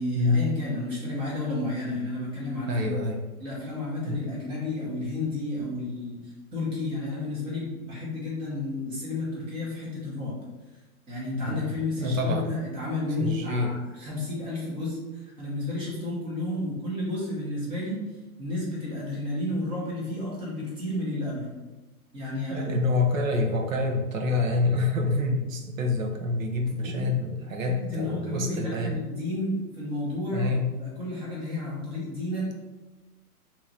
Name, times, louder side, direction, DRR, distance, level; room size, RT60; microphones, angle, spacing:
voice 1, 0.0-2.8 3.4-10.4 11.1-18.0 18.4-21.5 22.1-22.7 26.8-27.0 27.6-30.5 30.8-32.5, left 2 dB, 10° right, -6 dB, 0.8 m, -31 dB
voice 2, 2.7-3.2 4.1-4.2 11.4-12.5 13.2-13.7 22.5-29.0 30.3-30.6, left 2 dB, 60° right, 2 dB, 0.9 m, -27 dB
3.0 x 2.8 x 3.8 m, 1.1 s
hypercardioid pair, 150°, 45 cm